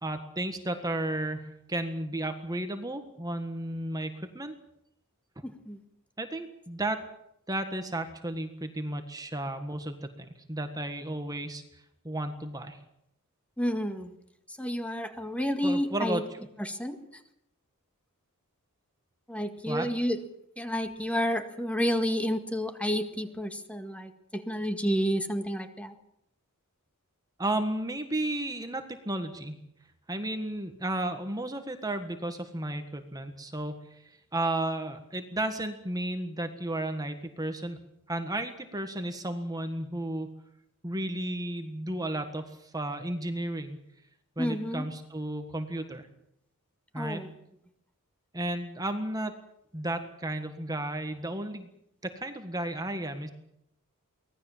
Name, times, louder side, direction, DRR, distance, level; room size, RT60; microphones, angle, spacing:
voice 1, 0.0-4.5 6.2-7.0 7.5-11.6 12.0-12.8 15.6-16.2 19.7-19.9 27.4-29.6 30.1-34.0 34.3-37.8 38.1-40.3 40.8-43.8 44.4-46.1 46.9-47.2 48.3-49.3 49.7-51.7 52.0-53.3, right 1 dB, 15° right, 7 dB, 1.6 m, -33 dB
voice 2, 5.4-5.8 13.6-14.1 14.6-16.2 16.6-17.2 19.3-20.2 20.6-26.0 44.4-44.9 47.0-47.3, equal, 5° left, 7 dB, 1.8 m, -30 dB
24.5 x 18.0 x 7.3 m, 0.78 s
head